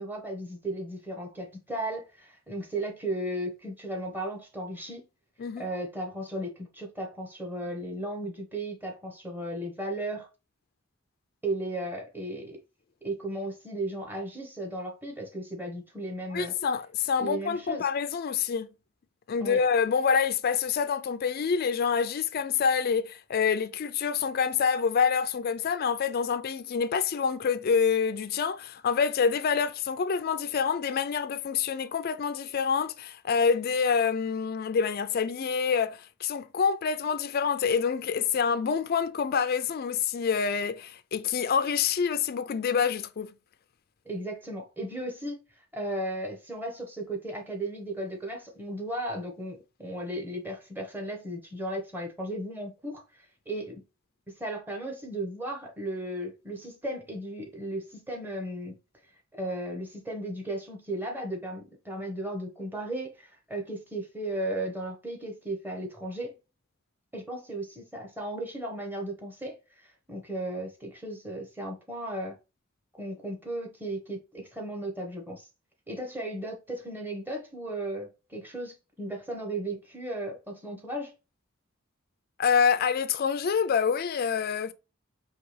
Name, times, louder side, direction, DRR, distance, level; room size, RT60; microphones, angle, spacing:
voice 1, 0.0-5.0 5.6-10.3 11.4-12.6 13.0-16.5 17.2-17.9 19.4-19.6 44.0-53.8 54.3-58.8 59.3-66.4 67.1-72.4 73.0-75.5 75.9-81.1, right 1 dB, 10° right, 1.2 m, -35 dB
voice 2, 16.3-18.7 19.3-43.3 82.4-84.7, left 6 dB, 50° left, 0.4 m, -27 dB
4.7 x 2.8 x 3.2 m
head